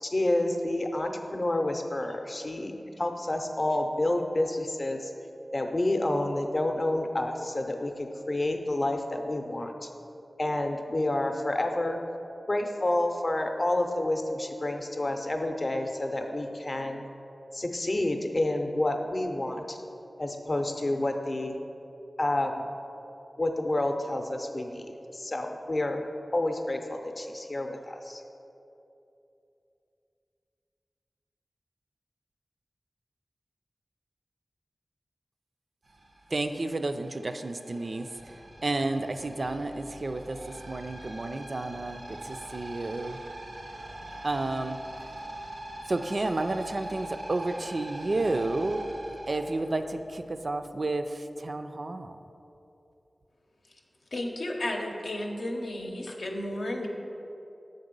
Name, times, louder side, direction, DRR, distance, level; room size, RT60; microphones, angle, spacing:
voice 1, 0.0-2.7 3.0-5.1 5.5-9.9 10.4-12.0 12.5-17.0 17.5-19.8 20.2-21.5 22.2-22.7 23.4-26.0 26.3-28.2, left 1 dB, 45° left, 4 dB, 0.6 m, -29 dB
sound 1, 35.8-50.4, right 1 dB, 85° right, 0.8 m, -43 dB
voice 2, 36.3-38.3 38.6-43.2 44.2-44.8 45.9-48.8 49.3-52.2, right 2 dB, 55° right, 8 dB, 0.3 m, -31 dB
voice 3, 54.1-56.9, left 1 dB, 85° left, 1 dB, 0.7 m, -33 dB
6.7 x 3.9 x 5.2 m, 2.9 s
wide cardioid pair, 60°, 0 cm